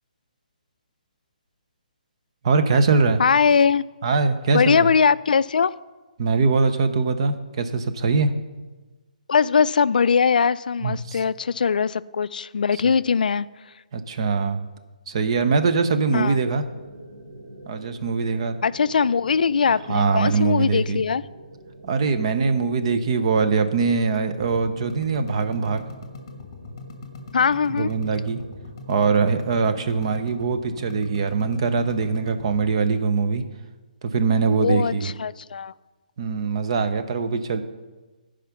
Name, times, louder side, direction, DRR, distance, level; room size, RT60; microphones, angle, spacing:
voice 1, 2.4-3.2 4.0-4.9 6.2-8.3 10.8-11.2 13.9-14.6 15.1-16.6 17.7-18.6 19.9-21.0 21.8-25.8 27.7-28.4 28.9-33.4 34.0-35.1 36.2-37.6, right 4 dB, 40° right, 9 dB, 0.7 m, -22 dB
voice 2, 3.2-3.8 4.5-5.7 9.3-13.5 16.1-16.4 18.6-21.2 27.3-27.9 34.6-35.7, left 6 dB, 75° left, 18 dB, 0.3 m, -21 dB
sound 1, 16.2-29.6, right 1 dB, 80° right, 2.9 m, -46 dB
sound 2, 24.3-32.8, left 3 dB, 30° left, 1.1 m, -41 dB
13.0 x 5.0 x 5.9 m, 1.2 s
hypercardioid pair, 170°, 5 cm